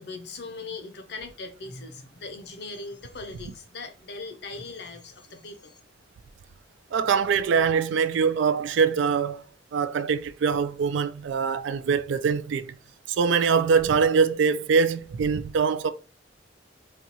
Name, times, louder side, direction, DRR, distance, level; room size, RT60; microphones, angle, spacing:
voice 1, 0.0-5.8, left 3 dB, 60° left, 0.6 m, -40 dB
voice 2, 6.9-9.4 9.7-12.7 13.2-15.9, right 5 dB, 75° right, 0.3 m, -23 dB
4.2 x 2.3 x 2.7 m
head